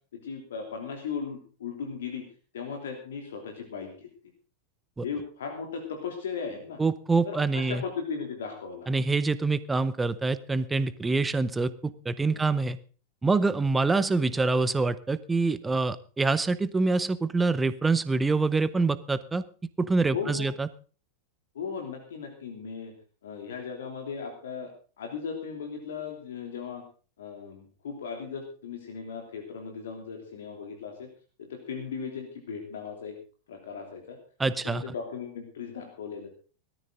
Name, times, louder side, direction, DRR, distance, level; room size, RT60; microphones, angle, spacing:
voice 1, 0.1-2.2 2.5-4.1 5.0-6.8 7.2-8.9 12.3-12.5 20.1-20.5 21.5-22.9 23.2-24.7 25.0-26.8 27.2-31.1 31.4-33.1 33.5-34.2 34.6-36.3, left 6 dB, 60° left, 4 dB, 3.0 m, -37 dB
voice 2, 6.8-7.8 8.9-12.8 13.2-19.4 19.8-20.7 34.4-34.9, right 3 dB, 10° right, 16 dB, 0.9 m, -26 dB
17.5 x 13.5 x 3.9 m, 0.38 s
figure-of-eight pair, 90°, 0 cm